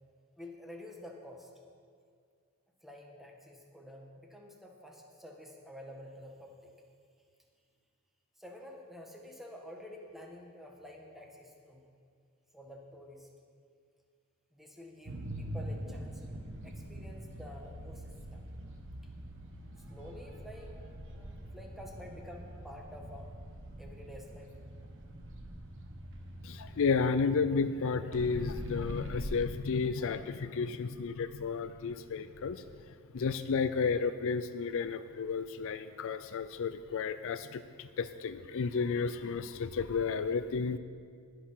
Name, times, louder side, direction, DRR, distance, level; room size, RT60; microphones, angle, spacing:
voice 1, 0.3-1.5 2.8-6.7 8.4-11.9 12.5-13.3 14.5-18.4 19.9-23.4 23.8-24.9, left 1 dB, ahead, 0 dB, 1.5 m, -50 dB
sound 1, 15.1-27.1 28.1-29.2, equal, 60° right, 1.4 m, -44 dB
voice 2, 26.4-32.6 33.1-40.8, left 5 dB, 65° left, 12 dB, 0.4 m, -32 dB
19.5 x 6.6 x 5.7 m, 2.2 s
head